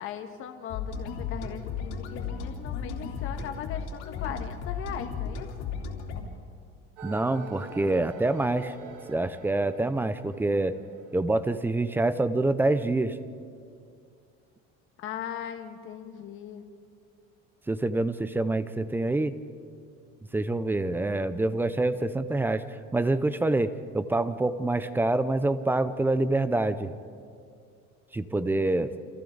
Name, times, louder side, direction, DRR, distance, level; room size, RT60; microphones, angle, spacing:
voice 1, 0.0-5.5 15.0-16.6, left 9 dB, 45° left, 5 dB, 1.7 m, -39 dB
sound 1, 0.7-6.2, left 6 dB, 60° left, 3.5 m, -35 dB
voice 2, 7.0-8.7 9.1-10.7 11.1-13.2 17.7-19.3 20.3-26.9 28.1-28.9, right 2 dB, 5° right, 12 dB, 0.4 m, -26 dB
sound 2, 7.0-12.1, right 4 dB, 75° right, 2.6 m, -46 dB
29.5 x 27.0 x 3.9 m, 2.3 s
cardioid pair, 175°, 30 cm